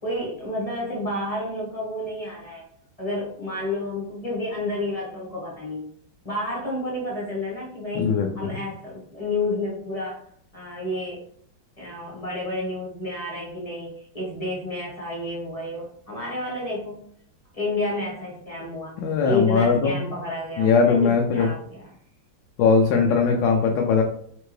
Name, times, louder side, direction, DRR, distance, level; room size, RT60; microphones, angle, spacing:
voice 1, 0.0-2.6 3.0-5.9 6.2-10.2 10.5-11.2 11.8-17.0 17.5-18.9 19.2-21.8, left 2 dB, 25° left, -4 dB, 0.9 m, -30 dB
voice 2, 7.9-8.6 19.0-19.9 20.6-21.5 22.6-24.0, left 5 dB, 75° left, 1 dB, 1.3 m, -20 dB
4.5 x 2.9 x 3.1 m, 0.64 s
omnidirectional pair, 2.1 m